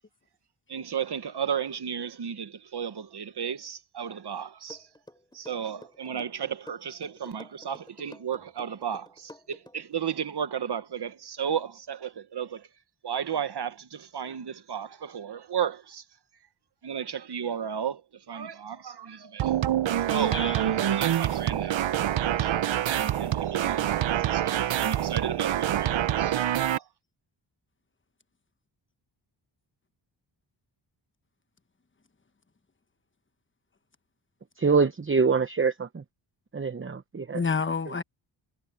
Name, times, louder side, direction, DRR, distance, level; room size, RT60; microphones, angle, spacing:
voice 1, 0.7-4.9 5.3-12.7 13.0-16.0 16.8-21.9 22.4-26.9, right 8 dB, 55° right, 1.3 m, -34 dB
sound 1, 4.7-10.0, left 1 dB, 10° left, 5.1 m, -49 dB
sound 2, 19.4-26.8, right 11 dB, 70° right, 0.8 m, -26 dB
voice 2, 20.1-21.0 37.3-38.0, left 5 dB, 25° left, 1.1 m, -30 dB
voice 3, 34.6-36.0 36.5-37.4, right 5 dB, 25° right, 0.9 m, -25 dB
wide cardioid pair, 85°, 47 cm